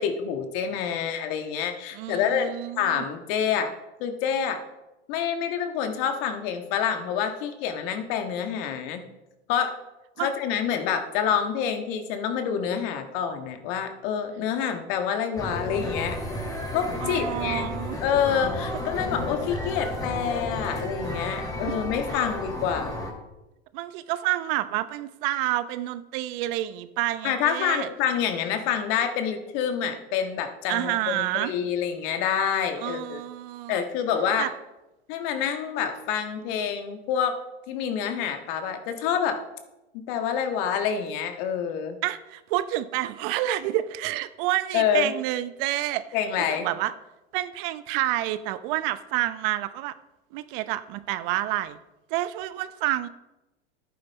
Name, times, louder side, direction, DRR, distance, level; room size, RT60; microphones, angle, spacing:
voice 1, 0.0-3.7 4.0-4.6 5.1-9.1 9.5-9.7 10.2-16.2 16.7-17.7 18.0-23.0 27.2-33.2 33.7-34.5 35.1-37.4 37.7-39.4 40.1-42.0 44.7-45.1 46.1-46.7, left 8 dB, 55° left, 6 dB, 1.6 m, -27 dB
voice 2, 1.9-3.1 10.2-10.3 17.0-18.0 22.1-22.2 23.7-27.9 30.7-31.5 32.8-33.8 34.4-34.5 42.0-46.0 46.4-46.9 47.3-49.9 50.3-51.8 52.1-53.1, right 15 dB, 55° right, 14 dB, 0.7 m, -29 dB
sound 1, 15.4-23.1, left 1 dB, 10° left, 2.8 m, -32 dB
11.0 x 9.4 x 4.2 m, 0.98 s
hypercardioid pair, 90°, 32 cm